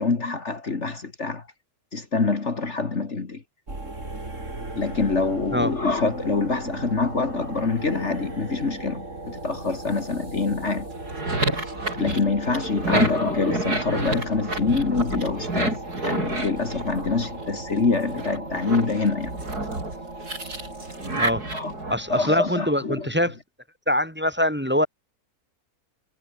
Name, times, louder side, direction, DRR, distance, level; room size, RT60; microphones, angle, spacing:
voice 1, 0.0-1.4 1.9-3.4 4.8-10.9 12.0-19.3 21.5-21.7 22.1-23.1, left 4 dB, 50° left, 2.3 m, -25 dB
sound 1, 3.7-22.8, right 2 dB, 50° right, 5.5 m, -37 dB
sound 2, 10.9-17.6 18.0-22.0, right 2 dB, 85° right, 7.0 m, -30 dB
voice 2, 12.9-13.3 21.2-21.4 21.9-23.3 23.9-24.9, equal, 5° right, 3.1 m, -24 dB
omnidirectional pair, 1.6 m